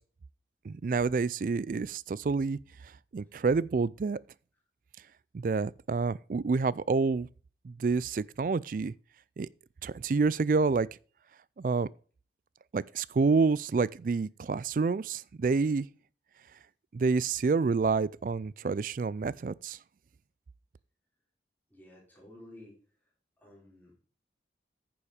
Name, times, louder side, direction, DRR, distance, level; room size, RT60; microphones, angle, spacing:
voice 1, 0.6-2.6 3.1-4.2 5.3-7.3 7.6-8.9 9.4-9.5 9.8-10.9 11.6-11.9 12.7-15.9 16.9-19.8, right 4 dB, 50° right, 0.3 m, -28 dB
voice 2, 21.7-22.8 23.4-23.9, left 1 dB, 10° left, 3.8 m, -53 dB
9.6 x 7.1 x 5.1 m
head